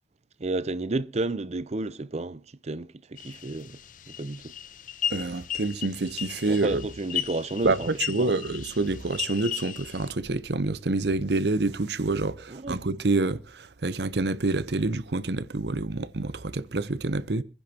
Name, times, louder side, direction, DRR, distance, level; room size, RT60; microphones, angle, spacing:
voice 1, 0.4-3.8 4.1-4.5 6.5-8.4 12.5-12.8, right 2 dB, 40° right, 0.6 m, -32 dB
sound 1, 3.2-10.1, left 10 dB, 50° left, 0.8 m, -36 dB
voice 2, 5.1-6.8 7.6-17.4, right 3 dB, 70° right, 0.8 m, -27 dB
25.5 x 10.5 x 2.9 m
head